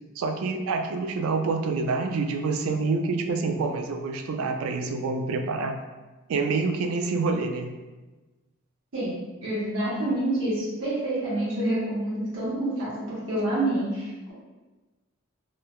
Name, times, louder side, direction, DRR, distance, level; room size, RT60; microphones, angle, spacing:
voice 1, 0.2-5.8 6.3-7.7, right 4 dB, 80° right, 6 dB, 0.3 m, -27 dB
voice 2, 9.4-14.3, right 1 dB, 65° right, -9 dB, 1.0 m, -27 dB
3.1 x 2.1 x 2.2 m, 1.2 s
head